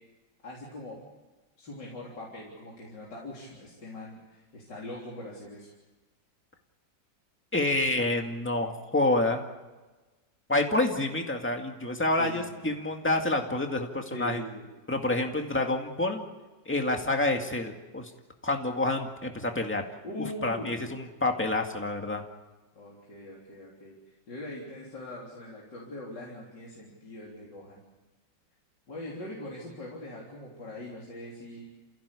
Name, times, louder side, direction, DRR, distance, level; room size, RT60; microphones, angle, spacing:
voice 1, 0.4-1.0 1.6-5.7 12.2-12.8 14.1-14.7 20.0-21.1 22.7-27.8 28.9-31.6, left 1 dB, 75° left, -4 dB, 4.3 m, -42 dB
voice 2, 7.5-9.4 10.5-14.4 14.9-16.3 16.7-18.1 18.4-19.8 20.4-22.2, left 2 dB, 5° left, 3 dB, 2.0 m, -28 dB
28.5 x 16.5 x 8.4 m, 1.2 s
omnidirectional pair, 1.9 m